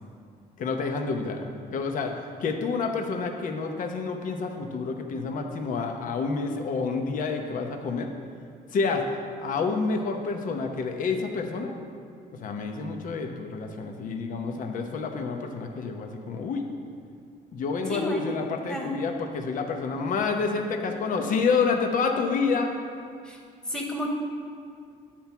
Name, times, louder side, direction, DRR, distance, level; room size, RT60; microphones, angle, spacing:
voice 1, 0.6-2.1 2.4-8.1 8.7-9.0 9.4-11.7 12.4-16.7 17.5-22.7, left 4 dB, 50° left, 4 dB, 0.9 m, -28 dB
voice 2, 17.9-18.2 18.7-18.9 23.2-23.4 23.7-24.1, equal, 5° left, -1 dB, 1.5 m, -31 dB
10.0 x 4.5 x 7.0 m, 2.3 s
cardioid pair, 110°, 17 cm